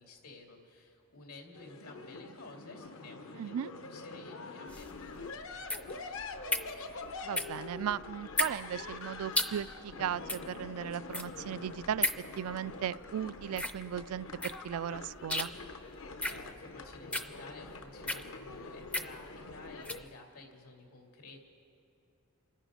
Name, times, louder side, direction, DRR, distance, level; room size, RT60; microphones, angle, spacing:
voice 1, 0.0-3.6 3.9-6.6 16.2-21.4, left 2 dB, 85° left, 1 dB, 2.5 m, -52 dB
sound 1, 1.5-20.0, left 3 dB, 60° left, 0.8 m, -45 dB
voice 2, 3.4-3.7 7.2-12.1 12.4-15.5, right 9 dB, 75° right, 17 dB, 0.3 m, -37 dB
sound 2, 4.7-20.1, left 1 dB, 5° left, 0.5 m, -37 dB
28.5 x 10.0 x 5.0 m, 2.7 s
head